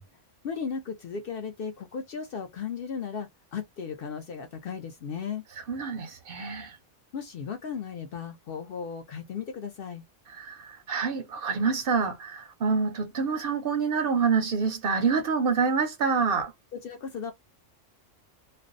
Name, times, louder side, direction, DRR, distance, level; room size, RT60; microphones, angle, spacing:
voice 1, 0.4-5.5 7.1-10.0 16.7-17.3, left 6 dB, 60° left, 0.6 m, -36 dB
voice 2, 5.7-6.8 10.3-16.5, right 5 dB, 60° right, 0.6 m, -27 dB
2.5 x 2.0 x 2.4 m
omnidirectional pair, 1.3 m